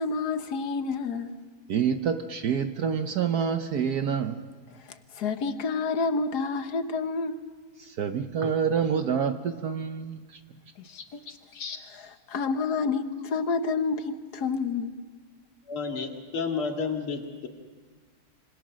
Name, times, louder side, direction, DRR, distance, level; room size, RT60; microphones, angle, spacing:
voice 1, 0.0-1.3 5.2-7.4 10.9-11.2 12.3-14.9, left 4 dB, 55° left, 9 dB, 1.6 m, -28 dB
voice 2, 1.7-4.5 7.8-10.4, right 7 dB, 60° right, 8 dB, 1.1 m, -27 dB
voice 3, 15.7-17.5, left 5 dB, 80° left, 3 dB, 3.0 m, -31 dB
26.0 x 25.0 x 6.3 m, 1.5 s
omnidirectional pair, 2.3 m